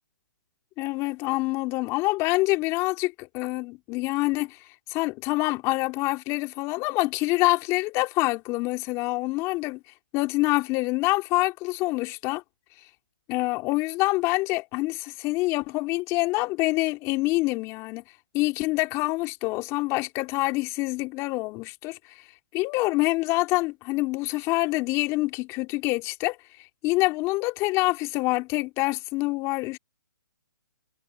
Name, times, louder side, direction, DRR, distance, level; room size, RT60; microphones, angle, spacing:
voice 1, 0.8-4.6 4.9-9.8 10.1-12.4 13.3-18.0 18.3-22.2 22.5-26.4 26.8-29.8, left 22 dB, 25° left, 2.9 m, -26 dB
hypercardioid pair, 145°, 11 cm